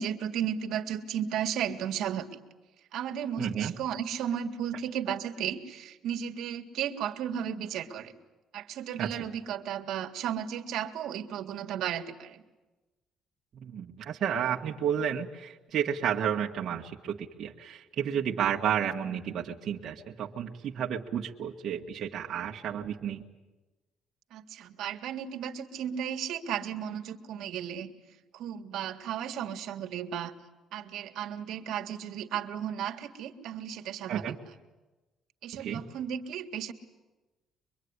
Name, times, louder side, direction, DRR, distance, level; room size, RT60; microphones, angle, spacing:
voice 1, 0.0-2.3 2.9-8.1 8.5-12.4 24.3-27.9 28.3-30.3 30.7-34.4 35.4-36.7, right 9 dB, 75° right, 3 dB, 1.9 m, -34 dB
voice 2, 3.4-3.7 9.0-9.3 13.5-23.2 34.1-34.4 35.6-35.8, right 8 dB, 55° right, -1 dB, 1.7 m, -31 dB
24.0 x 23.5 x 9.8 m, 1.1 s
cardioid pair, 135°, 0 cm